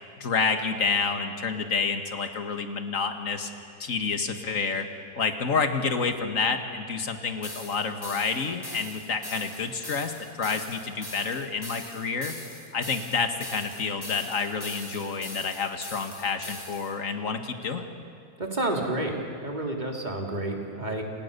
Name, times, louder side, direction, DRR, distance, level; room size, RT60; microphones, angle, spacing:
voice 1, 0.2-3.5 3.8-4.9 5.2-12.3 12.7-17.9, left 5 dB, 50° left, 6 dB, 2.1 m, -29 dB
sound 1, 7.4-16.9, left 1 dB, 15° left, 2.1 m, -42 dB
voice 2, 18.4-19.1 19.4-21.0, right 1 dB, 25° right, 1 dB, 3.3 m, -29 dB
30.0 x 27.5 x 6.9 m, 2.3 s
omnidirectional pair, 1.9 m